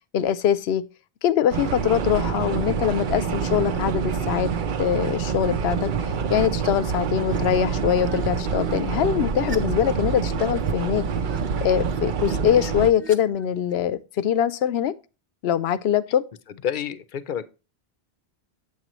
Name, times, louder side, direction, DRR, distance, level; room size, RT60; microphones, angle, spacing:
voice 1, 0.1-0.9 1.2-4.5 4.8-11.1 11.6-15.0 15.4-16.3, left 9 dB, 85° left, 0.8 m, -23 dB
sound 1, 1.5-12.9, right 6 dB, 60° right, 0.7 m, -26 dB
sound 2, 6.9-7.6 8.0-13.9, right 3 dB, 15° right, 0.8 m, -42 dB
voice 2, 16.6-17.4, left 8 dB, 55° left, 0.7 m, -28 dB
8.5 x 7.4 x 3.0 m
omnidirectional pair, 1.0 m